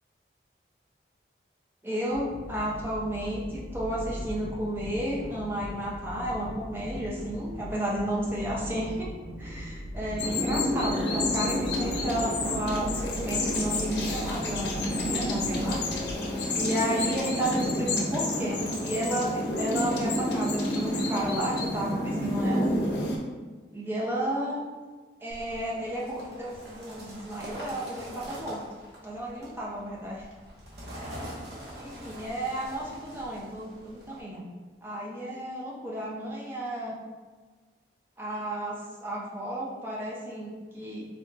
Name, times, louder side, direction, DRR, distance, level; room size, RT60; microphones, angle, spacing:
voice 1, 1.8-9.1 9.4-14.8 15.1-16.0 16.5-22.7 23.7-24.6 25.2-28.6 29.0-30.2 30.9-31.1 31.8-34.5 34.8-37.0 38.2-41.1, right 1 dB, 10° right, -5 dB, 0.6 m, -32 dB
sound 1, 2.1-16.1, equal, 80° right, 1.3 m, -39 dB
sound 2, 10.2-23.2, left 1 dB, 65° left, 0.7 m, -29 dB
sound 3, 25.3-34.2, equal, 60° right, 0.9 m, -44 dB
4.0 x 2.3 x 3.2 m, 1.4 s
head